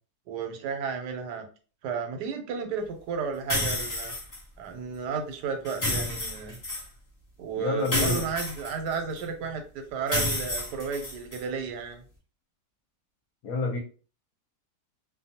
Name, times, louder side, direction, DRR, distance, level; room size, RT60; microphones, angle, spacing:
voice 1, 0.3-1.5 1.8-4.1 4.6-6.6 7.4-12.0, right 5 dB, 85° right, 5 dB, 1.2 m, -33 dB
sound 1, 3.5-4.4 5.6-6.8 7.8-9.2 10.1-11.4, left 1 dB, 25° left, 1.1 m, -30 dB
voice 2, 7.6-8.3 13.4-13.8, left 4 dB, 65° left, 1 dB, 1.0 m, -28 dB
2.5 x 2.2 x 2.7 m, 0.37 s
omnidirectional pair, 1.8 m